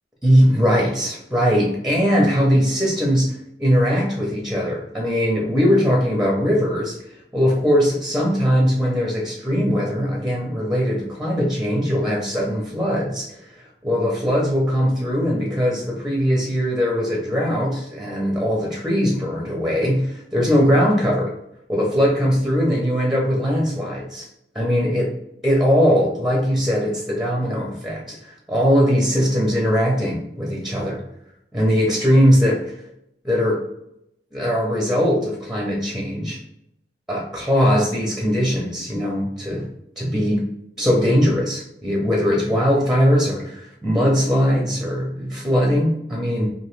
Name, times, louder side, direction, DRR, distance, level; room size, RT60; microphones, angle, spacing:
voice 1, 0.2-7.0 7.3-21.3 21.7-24.3 24.5-25.1 25.4-31.0 31.5-32.8 33.2-33.6 34.3-36.4 37.1-39.7 40.0-40.4 40.8-46.5, equal, ahead, -1 dB, 0.5 m, -20 dB
2.9 x 2.6 x 3.1 m, 0.78 s
head